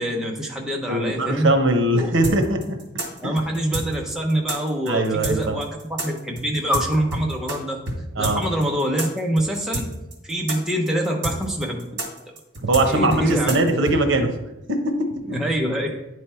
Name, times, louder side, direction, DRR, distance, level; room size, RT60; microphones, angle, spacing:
voice 1, 0.0-1.5 1.9-2.1 3.2-7.8 8.2-9.9 10.2-11.9 12.9-13.7 15.3-16.0, right 1 dB, ahead, -1 dB, 0.7 m, -25 dB
voice 2, 0.9-2.8 3.2-3.4 4.9-5.6 8.2-8.4 12.6-14.3 14.7-15.4, right 1 dB, 80° right, 5 dB, 0.9 m, -21 dB
sound 1, 2.2-7.6 7.9-8.0 8.2-14.0, right 2 dB, 65° right, 1.9 m, -28 dB
9.9 x 3.4 x 4.3 m, 0.92 s
head